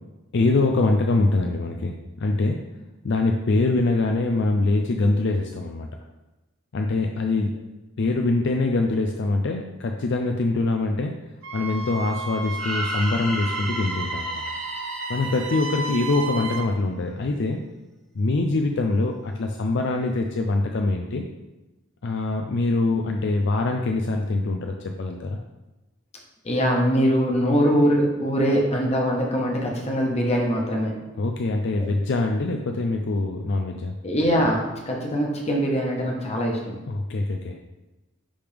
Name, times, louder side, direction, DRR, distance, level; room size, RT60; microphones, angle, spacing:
voice 1, 0.3-2.7 3.0-5.9 6.7-7.6 8.0-11.1 11.5-14.4 15.1-17.6 18.1-21.2 22.0-25.4 31.2-33.9 36.9-37.6, left 2 dB, 60° left, 3 dB, 0.4 m, -24 dB
Wind instrument woodwind instrument, 11.4-16.7, right 3 dB, 70° right, 0.6 m, -34 dB
sound 1, 12.6-16.6, equal, 5° left, 1.0 m, -33 dB
voice 2, 26.4-30.9 34.0-36.8, equal, 30° left, -1 dB, 1.2 m, -22 dB
10.0 x 3.5 x 3.5 m, 1.1 s
head